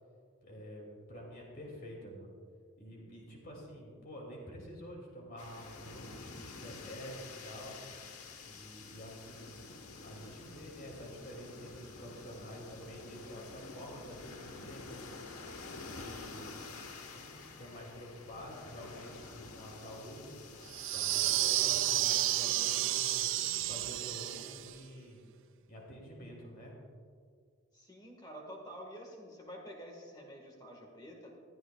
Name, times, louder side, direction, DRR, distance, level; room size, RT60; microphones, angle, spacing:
voice 1, 0.4-2.3 2.8-7.8 8.4-9.6 10.0-15.0 15.7-16.5 17.1-20.4 20.9-25.2 25.7-26.7, equal, 40° left, -1 dB, 2.4 m, -48 dB
sound 1, 5.4-21.8, left 4 dB, 85° left, 1.2 m, -49 dB
sound 2, 20.7-24.7, right 14 dB, 55° right, 0.3 m, -31 dB
voice 2, 27.7-31.4, equal, 20° left, 1 dB, 1.5 m, -49 dB
20.5 x 11.5 x 2.3 m, 2.1 s
head